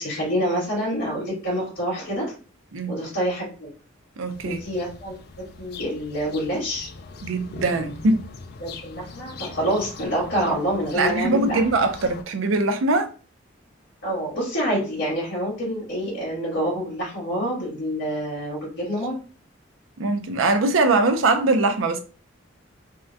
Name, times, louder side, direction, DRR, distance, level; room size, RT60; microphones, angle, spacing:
voice 1, 0.0-2.3 2.8-3.7 4.4-6.9 8.6-11.6 14.0-19.1, equal, 85° left, 1.6 m, -27 dB
voice 2, 4.2-4.6 7.2-8.2 10.9-13.1 20.0-22.0, right 2 dB, 85° right, 0.5 m, -22 dB
sound 1, 4.3-12.2, left 4 dB, 50° left, 0.3 m, -41 dB
3.6 x 2.1 x 2.6 m
head